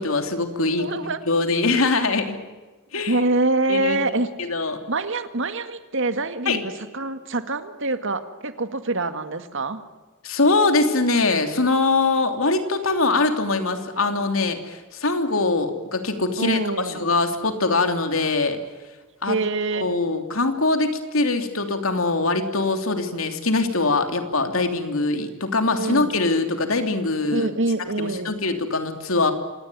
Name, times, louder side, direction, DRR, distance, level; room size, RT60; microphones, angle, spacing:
voice 1, 0.0-2.4 2.9-3.2 3.7-4.0 4.4-4.8 6.5-6.6 10.2-16.6 16.8-18.6 19.2-19.4 19.7-27.5 28.0-29.3, left 3 dB, 70° left, 7 dB, 3.0 m, -22 dB
voice 2, 0.7-1.2 3.1-4.3 4.9-9.8 13.9-14.1 16.4-17.0 19.3-19.9 25.7-26.1 27.3-28.3, right 2 dB, 60° right, 10 dB, 1.9 m, -25 dB
26.0 x 19.0 x 9.3 m, 1.2 s
head